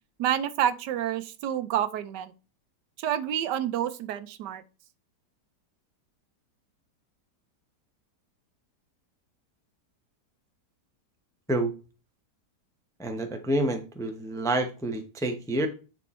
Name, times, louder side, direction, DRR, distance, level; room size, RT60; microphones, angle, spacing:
voice 1, 0.2-2.3 3.0-4.6, right 10 dB, 85° right, 1.3 m, -28 dB
voice 2, 13.0-15.7, right 1 dB, 5° left, 0.5 m, -28 dB
9.3 x 4.4 x 4.2 m
omnidirectional pair, 1.8 m